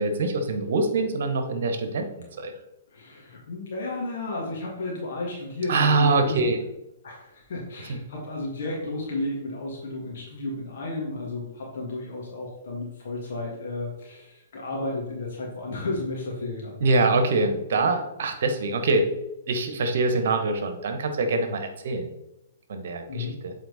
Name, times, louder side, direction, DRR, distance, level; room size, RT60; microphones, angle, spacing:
voice 1, 0.0-2.5 5.7-6.6 7.9-8.0 16.8-19.1 19.5-22.1 22.7-23.5, right 3 dB, 60° right, 7 dB, 1.2 m, -24 dB
voice 2, 2.9-6.5 7.0-16.8 23.1-23.4, left 2 dB, 55° left, -2 dB, 1.9 m, -33 dB
8.0 x 4.3 x 4.2 m, 0.92 s
figure-of-eight pair, 115°, 0 cm